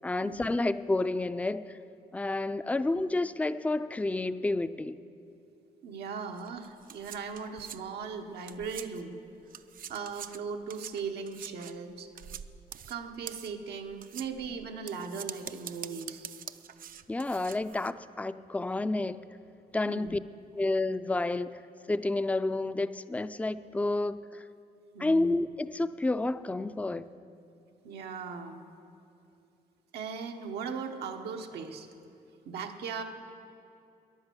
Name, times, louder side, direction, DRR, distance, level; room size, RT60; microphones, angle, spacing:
voice 1, 0.0-1.7 2.1-5.0 17.1-19.2 19.7-20.2 20.6-21.6 21.9-24.4 25.0-27.1, left 2 dB, 10° left, 0.4 m, -30 dB
voice 2, 5.8-9.2 9.9-12.1 12.9-16.3 19.9-20.1 24.9-25.4 27.8-28.6 29.9-31.9 32.5-33.0, right 5 dB, 85° right, 1.1 m, -38 dB
sound 1, 6.4-9.2 9.5-17.9, right 9 dB, 60° right, 0.5 m, -45 dB
14.0 x 10.5 x 6.8 m
cardioid pair, 85°, 17 cm